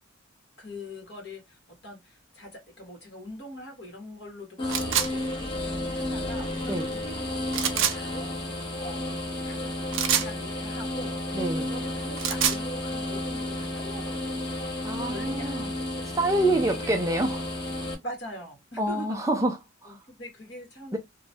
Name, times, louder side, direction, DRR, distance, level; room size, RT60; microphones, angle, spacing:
voice 1, 0.6-8.4 8.8-9.7 10.1-16.1 16.6-17.0 18.0-19.2 19.8-21.0, equal, 60° left, 1.5 m, -43 dB
sound 1, 4.6-17.9, left 1 dB, 25° left, 0.9 m, -32 dB
sound 2, 4.7-5.1 7.5-8.0 9.9-10.3 12.0-12.6, right 9 dB, 70° right, 0.5 m, -25 dB
voice 2, 11.3-11.7 14.8-15.7 16.1-17.4 18.8-19.6 19.8-20.0 20.9-21.0, right 1 dB, 15° right, 0.4 m, -26 dB
3.0 x 2.2 x 2.7 m
head